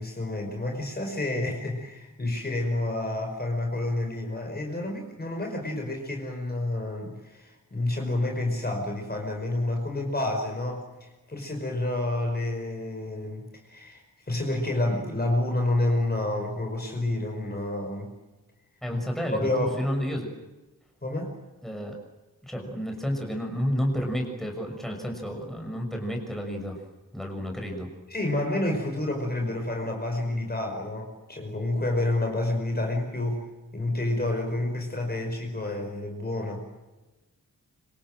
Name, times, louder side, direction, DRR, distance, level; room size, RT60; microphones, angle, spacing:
voice 1, 0.0-18.1 18.9-19.0 19.4-19.7 21.0-21.3 28.1-33.5 33.7-36.6, left 2 dB, 30° left, 2 dB, 5.4 m, -29 dB
voice 2, 18.8-20.3 21.6-22.0 22.4-26.8 27.1-27.9, equal, ahead, 2 dB, 6.3 m, -31 dB
26.0 x 26.0 x 7.8 m, 1.1 s
wide cardioid pair, 145°, 33 cm